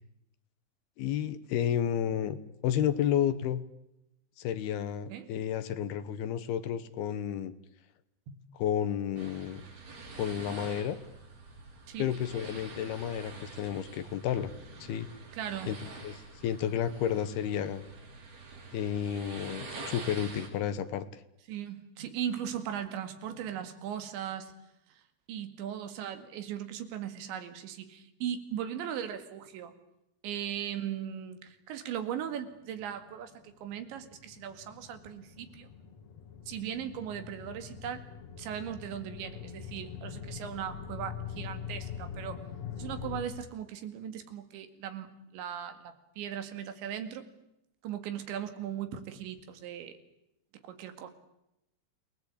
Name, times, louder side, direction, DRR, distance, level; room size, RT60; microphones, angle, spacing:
voice 1, 1.0-2.4 2.6-3.6 4.4-7.5 8.6-9.6 10.2-11.0 12.0-14.5 14.8-15.1 15.7-15.8 16.0-16.1 16.4-17.8 18.7-21.1, left 9 dB, 70° left, 13 dB, 2.8 m, -31 dB
sound 1, 9.2-20.5, right 3 dB, 65° right, 7.8 m, -46 dB
voice 2, 15.3-15.8 21.5-24.5 24.9-25.0 25.3-29.7 30.2-35.7 36.5-38.0 38.4-42.4 42.8-47.3 47.8-50.0 50.6-51.1, right 9 dB, 90° right, 9 dB, 4.3 m, -38 dB
sound 2, 32.9-43.2, left 7 dB, 45° left, 2.4 m, -43 dB
28.5 x 20.0 x 8.5 m, 0.86 s
omnidirectional pair, 5.1 m